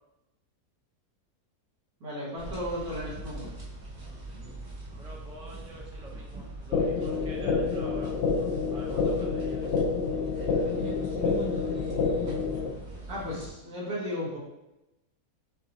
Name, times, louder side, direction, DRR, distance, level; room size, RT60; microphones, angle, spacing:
voice 1, 2.0-3.5 13.1-14.4, left 1 dB, 65° right, -6 dB, 1.9 m, -35 dB
sound 1, 2.4-13.5, right 2 dB, 40° right, 1.0 m, -41 dB
voice 2, 4.9-9.7, right 1 dB, 5° right, -4 dB, 0.4 m, -46 dB
sound 2, 6.7-12.7, left 5 dB, 80° left, 0.6 m, -28 dB
6.4 x 2.6 x 2.9 m, 0.95 s
omnidirectional pair, 1.7 m